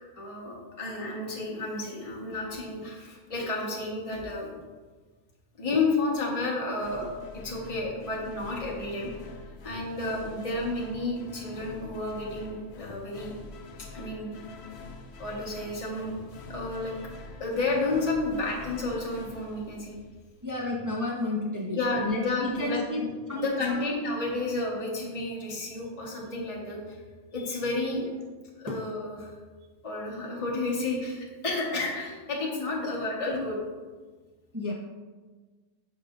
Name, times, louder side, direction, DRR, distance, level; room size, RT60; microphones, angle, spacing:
voice 1, 0.2-4.5 5.6-7.1 7.4-9.3 9.6-13.3 13.9-14.4 15.2-16.2 16.5-16.9 17.4-19.9 21.7-23.1 23.3-27.0 27.3-28.0 28.6-29.3 29.8-33.6, left 2 dB, 25° left, -3 dB, 1.3 m, -31 dB
sound 1, 6.8-20.4, left 3 dB, 60° left, 0.7 m, -45 dB
voice 2, 20.4-23.8 28.7-28.8 34.5-34.7, left 2 dB, 20° right, -3 dB, 0.5 m, -31 dB
8.3 x 6.4 x 2.5 m, 1.4 s
omnidirectional pair, 1.6 m